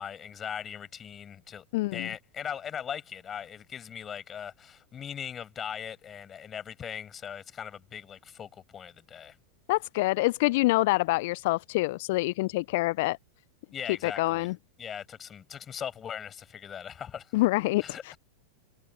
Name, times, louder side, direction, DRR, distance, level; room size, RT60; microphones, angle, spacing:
voice 1, 0.0-1.6 1.9-9.4 13.7-14.5 14.8-17.3 17.8-18.2, left 8 dB, 25° left, 7.9 m, -39 dB
voice 2, 1.7-2.1 9.7-13.2 14.0-14.6 17.3-18.1, left 21 dB, 55° left, 0.4 m, -26 dB
figure-of-eight pair, 90°, 0 cm